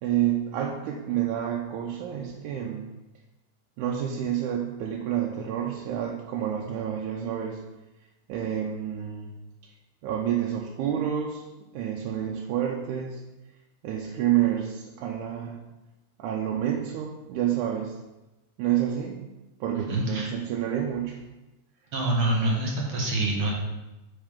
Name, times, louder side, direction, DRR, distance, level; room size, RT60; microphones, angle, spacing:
voice 1, 0.0-2.9 3.8-7.6 8.3-9.3 9.6-9.7 10.0-11.5 11.7-13.2 13.8-15.6 16.2-18.0 18.6-19.3 19.6-21.2, right 10 dB, 90° right, -1 dB, 2.1 m, -29 dB
voice 2, 19.9-20.3 21.9-23.5, right 1 dB, 60° right, -1 dB, 1.5 m, -26 dB
8.8 x 4.7 x 3.6 m, 1.0 s
omnidirectional pair, 3.4 m